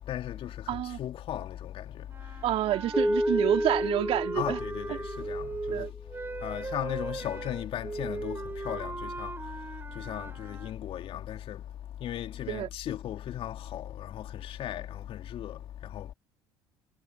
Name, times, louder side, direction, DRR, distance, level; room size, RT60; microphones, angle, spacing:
voice 1, 0.1-2.0 4.3-5.9 6.4-9.3 9.9-11.6 12.0-16.1, left 11 dB, 55° left, 2.7 m, -36 dB
voice 2, 0.7-1.0 2.4-4.6 5.7-5.9 12.5-12.7, right 13 dB, 60° right, 2.5 m, -28 dB
sound 1, 2.1-10.8, right 3 dB, 20° right, 4.6 m, -39 dB
Keyboard (musical), 2.9-5.9, equal, ahead, 0.9 m, -30 dB
hypercardioid pair, 65°, 11 cm